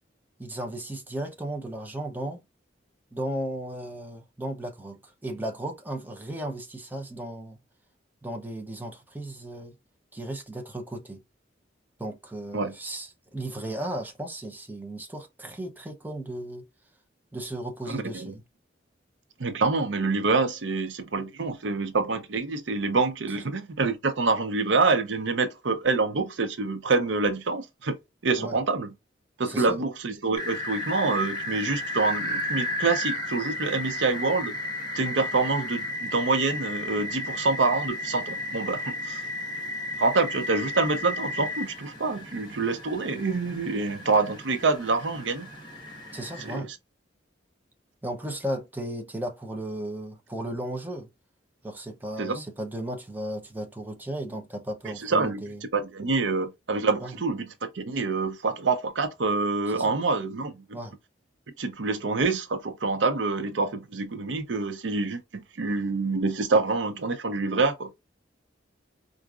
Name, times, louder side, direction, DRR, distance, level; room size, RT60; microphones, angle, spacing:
voice 1, 0.4-2.4 3.1-7.6 8.2-9.7 10.1-11.2 12.0-16.7 17.3-18.4 28.4-28.6 29.5-29.8 46.1-46.7 48.0-51.1 51.6-55.6 57.0-57.1 59.7-59.9 60.7-61.0, right 1 dB, 10° right, 0.7 m, -35 dB
voice 2, 17.9-18.3 19.4-28.0 28.2-28.9 29.4-34.5 34.9-39.2 40.0-45.5 46.4-46.7 52.2-52.4 55.0-60.5 61.6-67.9, right 3 dB, 80° right, 0.6 m, -26 dB
sound 1, 30.3-46.6, left 1 dB, 25° left, 1.4 m, -34 dB
4.6 x 2.5 x 2.4 m
head